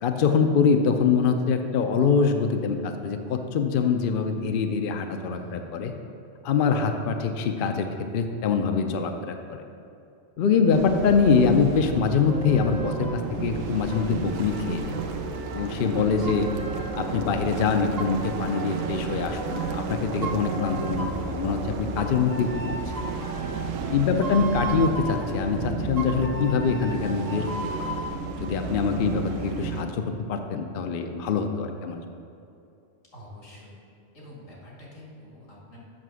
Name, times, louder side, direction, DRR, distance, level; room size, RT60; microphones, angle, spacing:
voice 1, 0.0-5.9 6.4-7.9 8.1-9.6 10.4-14.9 15.5-16.5 17.0-23.0 23.9-27.9 28.4-30.0 30.3-32.0, left 5 dB, 55° left, 5 dB, 0.6 m, -24 dB
voice 2, 5.2-5.7 15.9-16.6 20.6-21.1 33.1-33.8 34.1-35.8, left 1 dB, 85° left, -4 dB, 2.6 m, -44 dB
sound 1, 10.7-29.8, right 4 dB, 85° right, 1.0 m, -32 dB
sound 2, 12.3-13.3 13.9-17.3 18.0-19.8 20.2-21.3 22.0-25.3 26.0-28.2, right 2 dB, 30° right, 1.0 m, -37 dB
7.5 x 5.6 x 6.2 m, 2.6 s
omnidirectional pair, 1.3 m